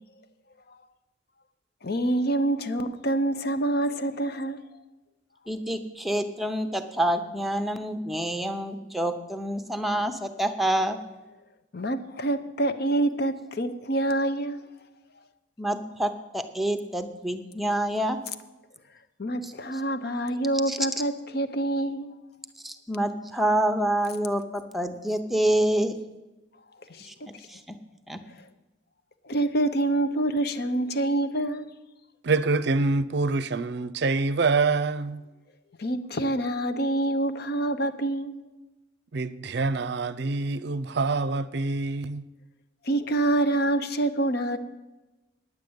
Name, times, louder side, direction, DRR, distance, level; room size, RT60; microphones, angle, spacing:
voice 1, 1.8-4.6 11.7-14.6 19.2-22.1 26.9-27.1 29.2-31.7 35.8-38.3 42.8-44.6, right 1 dB, 55° left, 0.8 m, -26 dB
voice 2, 5.5-11.0 15.6-18.2 19.4-19.5 20.7-20.8 22.6-26.0 27.1-27.2 27.5-27.6 28.1-28.2, right 1 dB, ahead, 0.8 m, -27 dB
voice 3, 32.2-35.2 39.1-42.2, right 3 dB, 65° right, 0.5 m, -26 dB
9.6 x 8.9 x 8.0 m
head